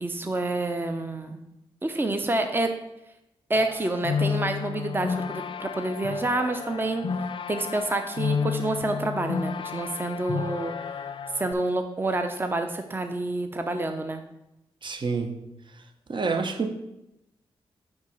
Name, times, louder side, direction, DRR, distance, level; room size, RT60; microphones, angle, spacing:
voice 1, 0.0-1.4 1.8-2.7 3.5-7.0 7.5-10.7 11.3-14.2, right 2 dB, 20° right, 6 dB, 0.6 m, -28 dB
sound 1, 3.5-11.5, left 6 dB, 55° left, 0.3 m, -31 dB
voice 2, 14.8-15.3 16.1-16.7, right 4 dB, 50° right, 7 dB, 0.8 m, -27 dB
4.8 x 4.8 x 5.5 m, 0.89 s
cardioid pair, 50°, 10 cm